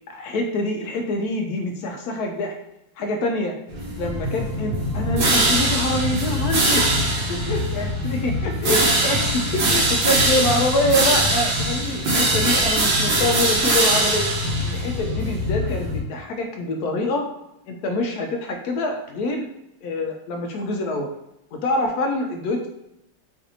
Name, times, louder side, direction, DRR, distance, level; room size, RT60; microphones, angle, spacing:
voice 1, 0.1-2.5 3.0-3.6 4.0-6.9 7.3-14.3 14.6-17.3 17.7-19.5 19.8-21.1 21.5-22.7, left 1 dB, 75° left, 3 dB, 0.9 m, -25 dB
sound 1, 3.7-16.0, right 1 dB, 75° right, 1.6 m, -22 dB
5.0 x 2.5 x 2.7 m, 0.85 s
omnidirectional pair, 2.1 m